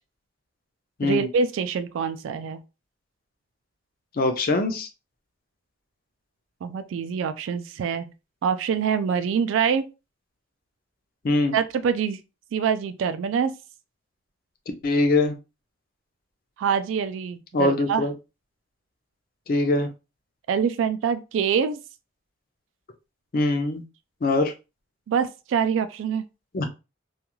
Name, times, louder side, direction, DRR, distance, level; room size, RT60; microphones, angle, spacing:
voice 1, 1.0-2.6 6.6-8.1 8.4-9.9 11.5-12.2 12.5-13.6 16.6-18.0 20.5-21.8 25.1-26.2, right 6 dB, 85° right, 0.3 m, -25 dB
voice 2, 4.2-4.9 11.2-11.6 14.8-15.4 17.5-18.1 19.5-19.9 23.3-23.8 24.2-24.5 26.5-26.7, left 2 dB, 50° left, 0.5 m, -22 dB
2.3 x 2.3 x 3.0 m
head